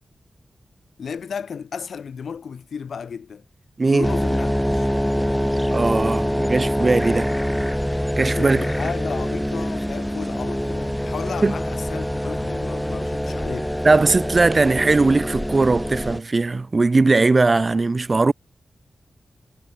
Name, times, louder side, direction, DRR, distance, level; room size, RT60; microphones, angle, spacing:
voice 1, 1.0-3.4 3.8-4.9 8.3-13.7, left 6 dB, 80° left, 5.3 m, -33 dB
sound 1, 4.0-16.2, equal, ahead, 1.1 m, -25 dB
voice 2, 5.7-7.3 8.2-8.6 11.4-11.6 13.8-18.3, right 3 dB, 30° right, 0.5 m, -19 dB
wide cardioid pair, 170°, 0 cm